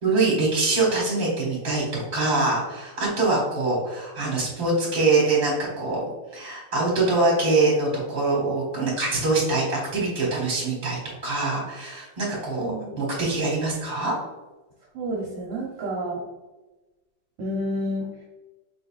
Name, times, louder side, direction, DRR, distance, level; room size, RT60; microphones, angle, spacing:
voice 1, 0.0-6.0 6.3-14.1, right 3 dB, 30° right, -3 dB, 1.4 m, -24 dB
voice 2, 12.6-13.0 14.9-16.2 17.4-18.0, equal, 70° right, -3 dB, 1.3 m, -29 dB
4.9 x 3.9 x 2.4 m, 1.1 s
omnidirectional pair, 2.4 m